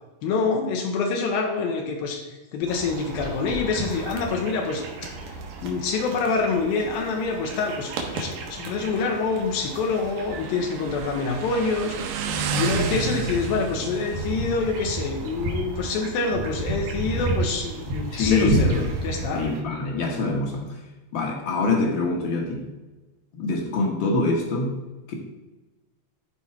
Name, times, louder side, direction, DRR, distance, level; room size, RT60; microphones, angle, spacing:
voice 1, 0.2-5.0 5.6-12.0 12.5-19.5, left 4 dB, 85° left, 1 dB, 2.8 m, -26 dB
Motorcycle, 2.6-15.5, right 5 dB, 75° right, 2.2 m, -34 dB
sound 1, 2.7-19.6, right 2 dB, 90° right, 3.1 m, -32 dB
voice 2, 18.1-18.7 19.3-20.6 21.1-22.7 23.3-24.7 25.1-25.2, left 3 dB, 55° left, 1 dB, 1.3 m, -24 dB
13.0 x 4.7 x 4.3 m, 1.2 s
omnidirectional pair, 4.2 m